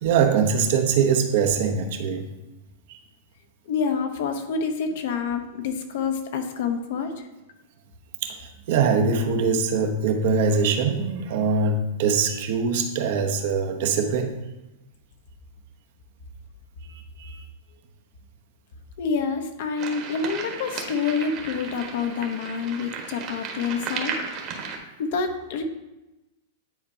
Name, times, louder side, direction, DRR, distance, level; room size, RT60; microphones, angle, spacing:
voice 1, 0.0-2.3 2.9-3.0 8.2-14.3 16.8-17.4, right 5 dB, 60° right, 4 dB, 0.8 m, -23 dB
voice 2, 3.7-7.1 19.0-24.2 25.0-25.6, left 5 dB, 65° left, 6 dB, 0.9 m, -27 dB
sound 1, 19.8-24.8, right 5 dB, 40° right, 1.2 m, -34 dB
9.2 x 4.3 x 2.8 m, 1.0 s
hypercardioid pair, 135°, 0 cm